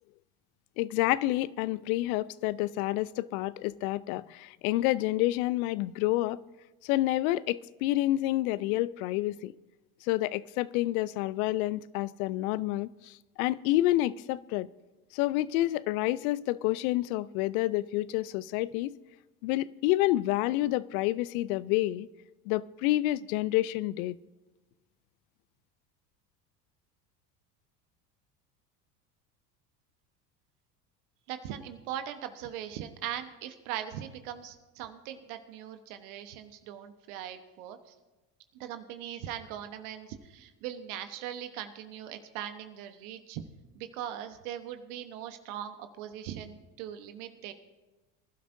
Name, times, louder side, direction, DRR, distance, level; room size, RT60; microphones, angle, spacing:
voice 1, 0.8-6.4 6.8-9.5 10.0-14.7 15.1-19.0 19.4-22.1 22.5-24.2, left 16 dB, 65° left, 0.6 m, -28 dB
voice 2, 31.3-37.9 38.6-43.4 43.7-47.5, right 10 dB, 65° right, 1.2 m, -40 dB
24.5 x 12.0 x 2.7 m
hypercardioid pair, 75°, 46 cm